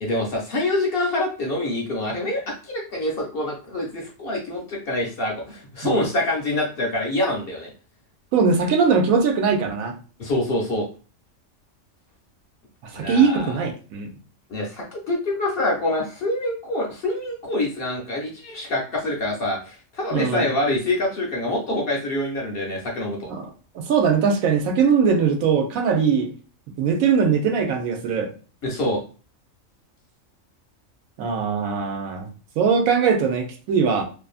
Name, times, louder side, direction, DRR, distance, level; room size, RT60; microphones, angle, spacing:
voice 1, 0.0-7.7 10.2-10.9 12.9-13.6 14.5-23.3 28.6-29.0, left 1 dB, 55° left, 0 dB, 0.7 m, -26 dB
voice 2, 8.3-10.0 12.8-14.1 20.1-20.5 23.3-23.5 23.7-26.3 26.8-28.3 31.2-32.3 32.6-34.0, right 6 dB, 85° right, 4 dB, 1.0 m, -21 dB
2.6 x 2.5 x 2.3 m, 0.37 s
omnidirectional pair, 1.4 m